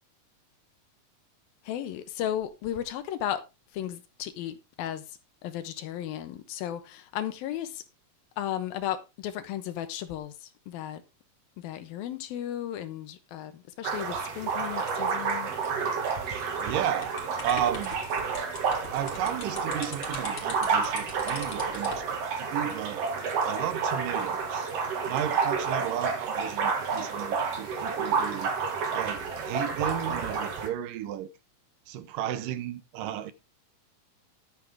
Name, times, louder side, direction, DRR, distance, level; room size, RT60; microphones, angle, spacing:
voice 1, 1.6-3.4 3.7-7.8 8.4-11.0 11.6-15.5, left 11 dB, 90° left, 2.9 m, -35 dB
sound 1, 13.8-30.7, right 5 dB, 50° right, 2.6 m, -30 dB
voice 2, 16.3-17.1 17.4-17.9 18.9-23.1 23.4-24.7 25.0-28.5 28.9-31.3 31.9-33.3, right 11 dB, 75° right, 2.4 m, -33 dB
sound 2, 17.0-22.1, left 3 dB, 40° left, 3.2 m, -41 dB
12.0 x 8.4 x 3.5 m
omnidirectional pair, 4.1 m